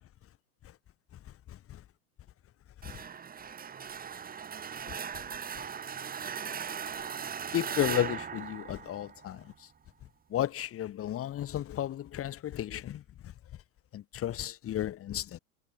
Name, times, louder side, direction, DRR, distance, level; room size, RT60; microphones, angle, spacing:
sound 1, 2.8-9.5, right 7 dB, 20° right, 3.5 m, -38 dB
voice 1, 7.5-9.4 10.3-13.0 13.9-15.4, left 12 dB, 30° left, 4.2 m, -33 dB
hypercardioid pair, 110°, 44 cm